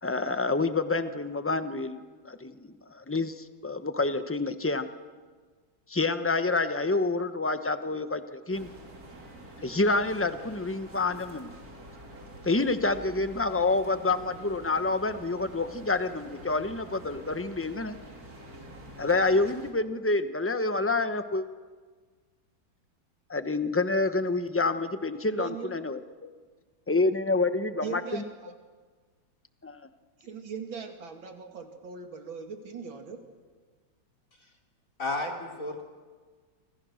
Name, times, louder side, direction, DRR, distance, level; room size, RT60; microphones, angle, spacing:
voice 1, 0.0-4.9 5.9-8.7 9.6-11.5 12.4-18.0 19.0-21.4 23.3-26.3 26.9-28.2 29.6-29.8, left 3 dB, 15° left, 10 dB, 0.5 m, -28 dB
sound 1, 8.5-19.7, right 1 dB, 50° right, 3.8 m, -47 dB
voice 2, 25.4-25.7 27.8-28.5 30.2-33.2, right 6 dB, 80° right, 5 dB, 3.2 m, -39 dB
voice 3, 35.0-35.8, left 2 dB, 40° left, 2 dB, 3.8 m, -32 dB
28.0 x 26.0 x 6.5 m, 1.5 s
omnidirectional pair, 2.1 m